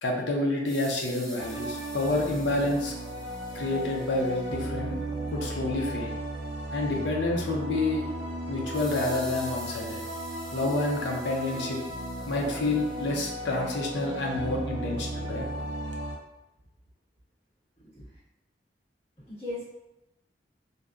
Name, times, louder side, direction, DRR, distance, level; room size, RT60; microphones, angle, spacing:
voice 1, 0.0-2.9 3.5-5.0 5.3-6.1 6.7-8.0 8.5-10.0 10.5-11.8 12.2-15.5, left 2 dB, 80° left, 0 dB, 0.6 m, -28 dB
sound 1, 0.7-4.5 8.7-13.5, equal, 5° left, 0.6 m, -47 dB
sound 2, 1.4-16.2, right 1 dB, 80° right, 0.5 m, -35 dB
voice 2, 19.2-19.6, left 2 dB, 35° left, -13 dB, 1.4 m, -38 dB
2.7 x 2.2 x 2.4 m, 0.93 s
head